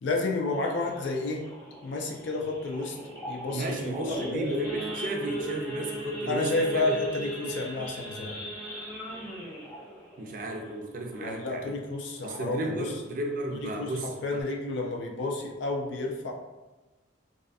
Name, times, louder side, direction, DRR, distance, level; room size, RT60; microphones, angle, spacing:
voice 1, 0.0-1.4 1.8-3.0 3.3-4.5 6.3-8.4 11.2-12.9 13.5-16.3, left 2 dB, 65° left, 1 dB, 0.4 m, -31 dB
Idling / Accelerating revving vroom / Sawing, 0.5-11.6 12.0-12.2 12.5-12.6 13.0-13.3 13.8-13.9 14.1-14.4, equal, 15° left, 0.9 m, -38 dB
voice 2, 3.5-7.0 7.4-7.5 10.2-11.8 12.2-14.5, right 1 dB, 40° right, 2 dB, 0.4 m, -34 dB
2.5 x 2.4 x 2.4 m, 1.1 s
head